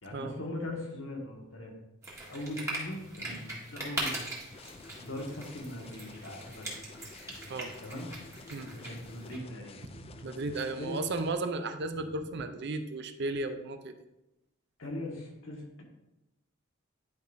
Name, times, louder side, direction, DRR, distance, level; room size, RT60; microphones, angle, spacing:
voice 1, 0.0-1.7 2.3-4.3 5.0-6.8 7.8-8.1 8.7-9.8 10.8-11.0 14.8-15.8, left 1 dB, 75° left, 0 dB, 1.6 m, -40 dB
sound 1, 2.0-9.4, right 1 dB, 15° right, 1.8 m, -41 dB
sound 2, 4.5-11.3, left 4 dB, 30° left, 0.3 m, -51 dB
voice 2, 9.9-13.9, right 2 dB, 55° right, 9 dB, 0.6 m, -35 dB
10.5 x 5.0 x 2.6 m, 0.95 s
head